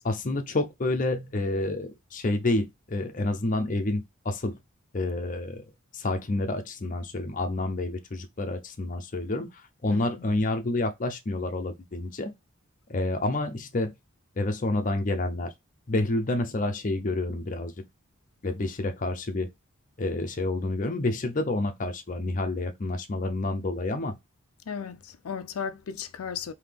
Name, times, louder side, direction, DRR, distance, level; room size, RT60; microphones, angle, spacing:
voice 1, 0.0-4.6 4.9-5.7 5.9-9.5 9.8-12.3 12.9-13.9 14.4-15.5 15.9-17.7 18.4-19.5 20.0-24.1, left 2 dB, 35° left, 0.6 m, -29 dB
voice 2, 9.9-10.3 24.7-26.5, left 7 dB, 80° left, 0.4 m, -35 dB
3.8 x 2.8 x 3.3 m
head